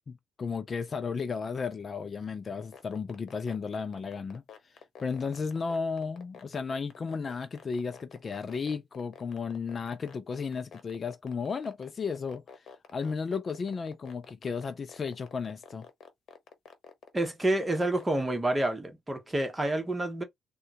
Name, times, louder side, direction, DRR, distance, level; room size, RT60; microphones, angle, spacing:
voice 1, 0.0-4.4 5.0-12.4 12.9-15.9, left 5 dB, 40° left, 0.4 m, -34 dB
sound 1, 2.6-18.2, left 7 dB, 60° left, 0.9 m, -49 dB
voice 2, 17.1-20.2, right 1 dB, 15° right, 1.1 m, -28 dB
3.7 x 2.2 x 2.8 m
cardioid pair, 90°, 0 cm